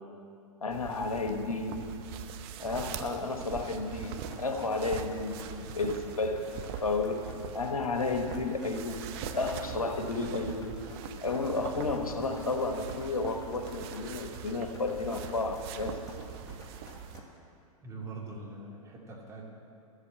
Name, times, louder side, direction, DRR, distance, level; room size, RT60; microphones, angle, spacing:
voice 1, 0.6-1.8 2.6-6.5 6.8-7.2 7.5-9.0 9.3-10.7 11.2-16.0, left 3 dB, 90° left, 5 dB, 1.1 m, -32 dB
sound 1, 0.7-17.2, right 8 dB, 45° right, 0.8 m, -42 dB
sound 2, 3.4-17.2, left 2 dB, 20° left, 2.2 m, -53 dB
voice 2, 17.8-19.5, right 3 dB, 15° right, -2 dB, 2.5 m, -43 dB
12.0 x 8.1 x 7.5 m, 2.5 s
hypercardioid pair, 105°, 18 cm